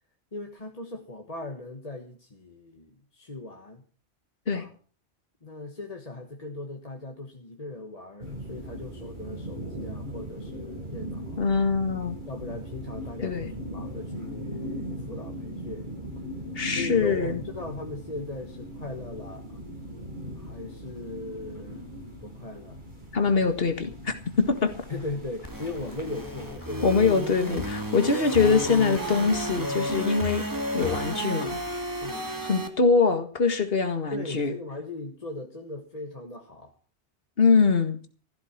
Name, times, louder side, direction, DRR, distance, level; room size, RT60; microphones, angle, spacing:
voice 1, 0.3-3.8 4.5-4.7 5.4-11.4 12.3-15.9 16.7-19.5 20.3-21.8 22.2-22.8 24.9-27.1 32.0-32.3 34.1-36.7, left 2 dB, 35° left, 3 dB, 1.6 m, -39 dB
sound 1, 8.2-26.5, equal, 45° right, 5.4 m, -39 dB
voice 2, 11.4-12.2 13.2-13.5 16.6-17.4 23.1-24.7 26.8-30.5 30.7-31.6 32.4-34.5 37.4-38.0, left 5 dB, 60° left, 8 dB, 2.0 m, -23 dB
sound 2, 25.4-32.7, right 1 dB, 15° right, 2.2 m, -32 dB
15.0 x 12.0 x 5.9 m, 0.40 s
omnidirectional pair, 1.1 m